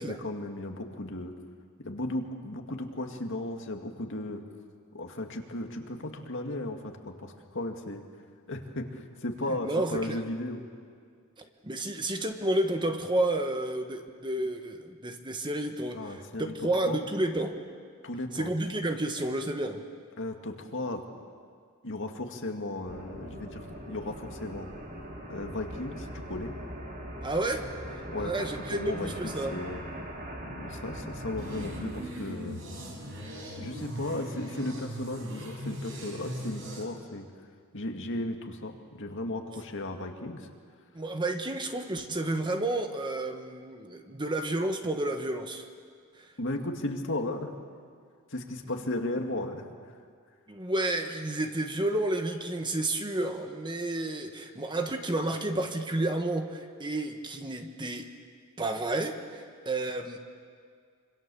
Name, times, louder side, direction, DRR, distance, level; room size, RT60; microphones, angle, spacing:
voice 1, 0.0-1.3 1.8-4.4 4.9-8.0 8.5-10.6 15.9-16.5 16.9-17.0 18.0-18.5 20.2-21.0 21.8-24.7 25.3-26.5 28.1-29.8 30.5-32.6 33.6-37.3 37.7-40.5 46.4-47.5 48.3-49.9, left 1 dB, 60° left, 4 dB, 2.2 m, -35 dB
voice 2, 9.6-10.2 11.6-17.5 18.3-19.8 27.2-27.7 28.2-29.6 40.9-45.7 46.2-46.3 50.5-58.1 58.6-60.2, right 2 dB, 20° right, 6 dB, 1.4 m, -31 dB
sound 1, 22.8-32.0, equal, 40° right, 4.0 m, -41 dB
sound 2, 31.4-36.8, equal, 65° right, 4.9 m, -39 dB
26.0 x 25.5 x 7.1 m, 2.1 s
head